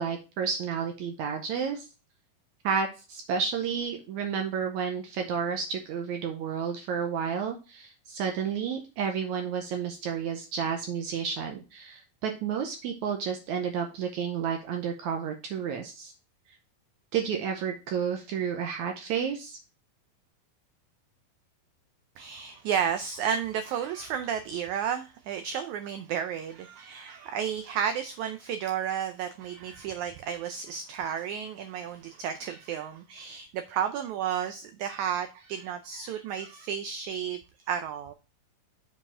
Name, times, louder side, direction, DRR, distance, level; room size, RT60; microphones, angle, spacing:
voice 1, 0.0-1.9 2.6-16.1 17.1-19.6, right 7 dB, 70° right, 1.9 m, -31 dB
voice 2, 22.2-37.4 37.7-38.1, right 8 dB, 90° right, 1.6 m, -32 dB
7.1 x 4.8 x 4.3 m
omnidirectional pair, 4.1 m